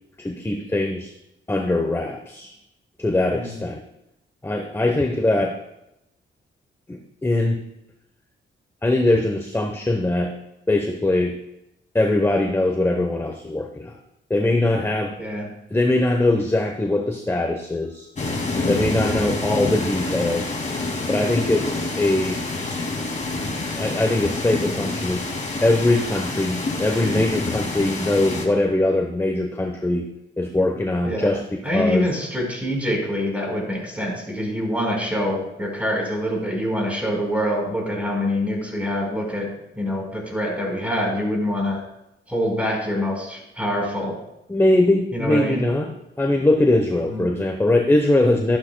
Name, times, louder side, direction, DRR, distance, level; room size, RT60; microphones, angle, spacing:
voice 1, 0.2-1.1 1.5-2.5 3.0-3.8 4.4-5.6 6.9-7.6 8.8-10.3 10.7-11.4 11.9-14.0 14.3-15.1 15.7-18.1 18.7-20.6 21.1-22.4 23.7-25.2 25.6-30.1 30.4-31.4 31.7-32.1 44.5-45.9 46.2-48.6, left 2 dB, 10° left, 3 dB, 0.9 m, -21 dB
voice 2, 15.2-15.5 19.0-19.3 31.0-31.3 31.6-39.5 39.7-41.8 42.3-44.2 45.1-45.6 47.0-47.2, equal, 5° right, -1 dB, 4.4 m, -25 dB
sound 1, 18.2-28.4, left 2 dB, 35° left, 2.4 m, -27 dB
13.0 x 11.5 x 2.2 m, 0.87 s
cardioid pair, 90°, 20 cm